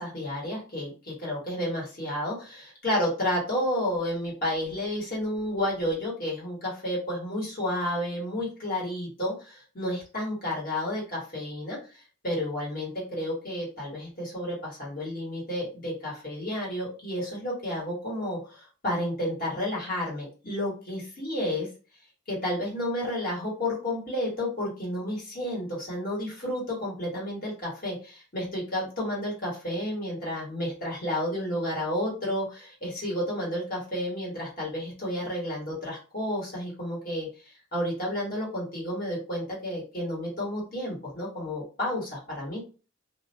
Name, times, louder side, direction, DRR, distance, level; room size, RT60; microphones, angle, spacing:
voice 1, 0.0-11.8 12.2-21.7 22.3-42.6, left 1 dB, 45° left, -5 dB, 1.3 m, -31 dB
2.4 x 2.1 x 2.6 m, 0.35 s
head